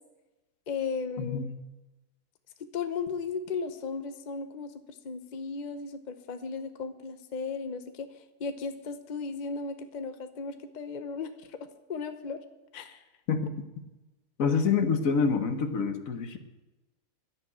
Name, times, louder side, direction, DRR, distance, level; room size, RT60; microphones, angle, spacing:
voice 1, 0.7-1.5 2.7-11.6 11.9-12.4 12.7-13.0, left 5 dB, 35° left, 8 dB, 0.9 m, -36 dB
voice 2, 1.2-1.5 13.3-13.5 14.4-16.4, left 5 dB, 70° left, 8 dB, 1.5 m, -27 dB
11.5 x 10.5 x 8.7 m, 1.1 s
omnidirectional pair, 1.5 m